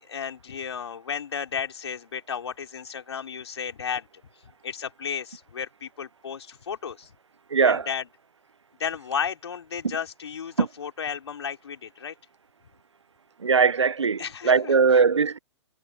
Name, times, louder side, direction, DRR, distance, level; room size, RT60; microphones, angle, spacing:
voice 1, 0.0-4.1 4.4-7.1 7.6-8.1 8.8-12.1 14.2-14.7, left 7 dB, 65° left, 4.5 m, -33 dB
voice 2, 7.5-7.9 10.6-10.7 13.4-15.4, right 5 dB, 75° right, 1.2 m, -20 dB
figure-of-eight pair, 110°, 15 cm